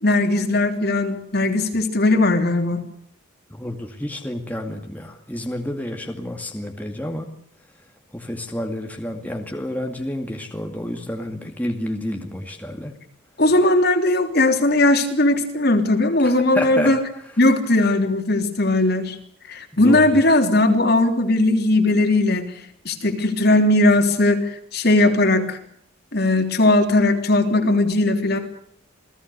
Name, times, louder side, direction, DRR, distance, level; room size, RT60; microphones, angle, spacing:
voice 1, 0.0-2.8 13.4-17.0 17.4-19.2 19.5-22.5 22.9-25.6 26.1-28.4, left 2 dB, 50° left, 5 dB, 3.4 m, -18 dB
voice 2, 3.5-7.3 8.1-12.9 16.2-16.9 19.7-20.2, left 1 dB, 10° left, 2 dB, 2.3 m, -29 dB
28.5 x 19.0 x 6.8 m, 0.66 s
head